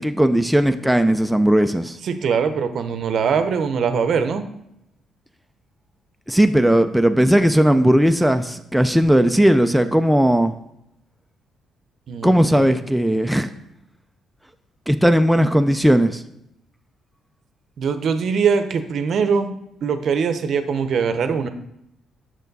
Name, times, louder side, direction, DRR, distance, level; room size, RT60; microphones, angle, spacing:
voice 1, 0.0-2.0 6.3-10.5 12.2-13.5 14.9-16.2, equal, ahead, 7 dB, 0.4 m, -17 dB
voice 2, 2.0-4.5 12.1-12.6 17.8-19.5 19.8-21.5, right 6 dB, 60° right, 9 dB, 0.6 m, -22 dB
6.8 x 6.1 x 4.0 m, 0.79 s
cardioid pair, 90°, 0 cm